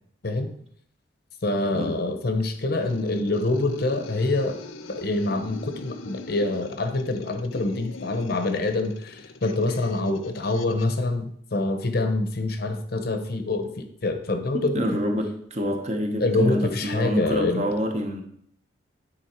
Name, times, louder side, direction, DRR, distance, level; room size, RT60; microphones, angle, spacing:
voice 1, 1.4-4.6 4.9-15.0 16.2-17.7, left 2 dB, 50° left, 0.8 m, -26 dB
sound 1, 2.8-11.0, left 3 dB, 85° left, 0.6 m, -41 dB
voice 2, 14.5-18.2, equal, 35° right, 0.9 m, -27 dB
9.6 x 4.3 x 4.4 m
head